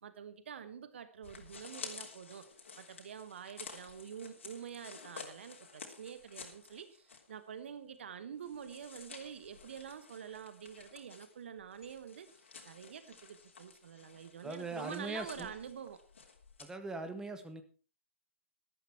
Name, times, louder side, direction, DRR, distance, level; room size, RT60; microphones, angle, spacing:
voice 1, 0.0-2.5 2.8-12.3 12.6-16.0, right 8 dB, 60° right, 12 dB, 1.3 m, -47 dB
sound 1, 1.2-7.4 7.7-7.8 8.4-16.7, left 5 dB, 70° left, 3.3 m, -52 dB
voice 2, 14.4-15.5 16.6-17.6, right 3 dB, 10° right, 9 dB, 1.7 m, -41 dB
13.0 x 13.0 x 4.6 m, 0.37 s
figure-of-eight pair, 110°, 7 cm